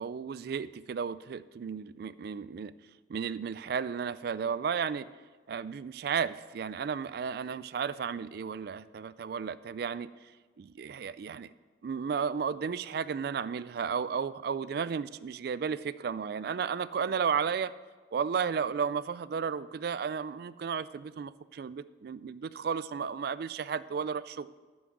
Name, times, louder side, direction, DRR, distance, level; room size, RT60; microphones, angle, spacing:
voice 1, 0.0-2.7 3.1-5.1 5.5-10.1 10.6-11.5 11.8-17.7 18.1-24.5, right 6 dB, 55° right, 17 dB, 0.3 m, -33 dB
11.0 x 6.3 x 6.0 m, 1.4 s
head